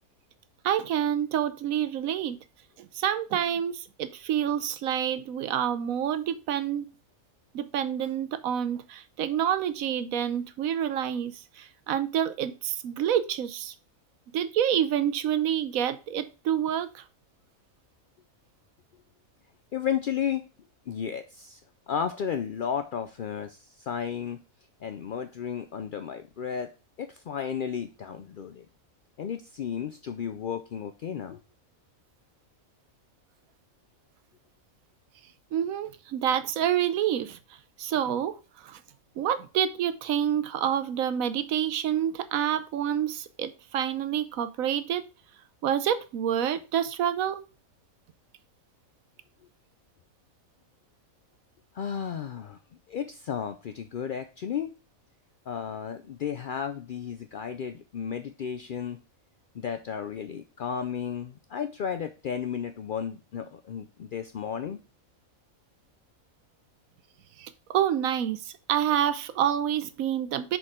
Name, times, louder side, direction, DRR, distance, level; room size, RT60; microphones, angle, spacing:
voice 1, 0.6-2.4 2.8-6.9 7.5-13.7 14.3-17.0 35.5-37.4 37.8-38.4 38.6-38.8 39.2-45.0 45.6-47.4 67.4-70.6, right 10 dB, 75° right, 1.1 m, -28 dB
voice 2, 19.7-20.5 20.9-21.6 21.9-24.4 24.8-26.7 27.0-28.7 29.2-31.4 51.7-52.6 52.9-54.7 55.5-59.0 59.5-64.8, left 8 dB, 70° left, 0.5 m, -33 dB
6.4 x 4.7 x 3.5 m
omnidirectional pair, 1.5 m